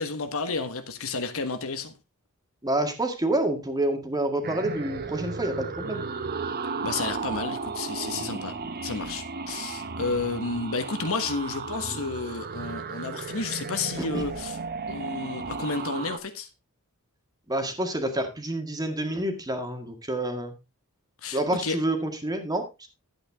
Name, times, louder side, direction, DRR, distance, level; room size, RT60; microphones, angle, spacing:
voice 1, 0.0-1.9 6.8-8.5 8.8-14.6 14.9-16.5 21.2-21.8, left 4 dB, 65° left, 1.4 m, -31 dB
voice 2, 2.6-6.0 14.0-14.2 17.5-20.5 21.3-22.9, right 1 dB, 15° right, 2.0 m, -28 dB
sound 1, 4.4-16.2, right 4 dB, 45° right, 0.9 m, -34 dB
11.5 x 8.5 x 3.5 m
head